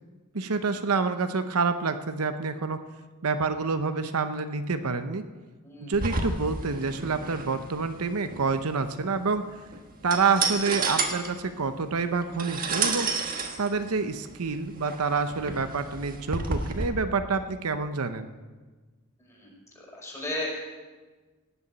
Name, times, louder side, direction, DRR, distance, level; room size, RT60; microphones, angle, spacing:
voice 1, 0.3-2.8 3.2-5.3 5.8-9.4 10.0-13.1 13.6-18.3, right 4 dB, 80° right, 9 dB, 0.8 m, -27 dB
voice 2, 5.6-6.0 15.3-15.5 19.2-19.5 19.8-20.6, left 1 dB, 15° left, -3 dB, 5.3 m, -36 dB
sound 1, 5.9-16.9, right 4 dB, 40° right, 1.5 m, -32 dB
17.5 x 7.0 x 8.8 m, 1.3 s
head